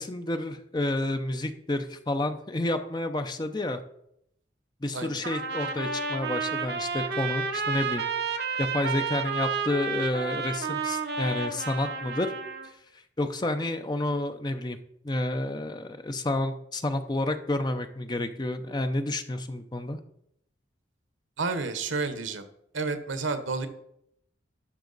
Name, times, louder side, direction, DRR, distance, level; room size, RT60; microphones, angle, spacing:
voice 1, 0.0-3.8 4.8-8.0 8.6-12.3 13.2-14.8 15.0-20.0, left 1 dB, 20° left, 8 dB, 0.5 m, -30 dB
Trumpet, 5.2-12.7, right 5 dB, 55° right, 0.9 m, -31 dB
voice 2, 21.4-22.4 22.7-23.7, right 4 dB, 85° right, 10 dB, 1.0 m, -30 dB
12.0 x 5.6 x 4.0 m, 0.75 s
head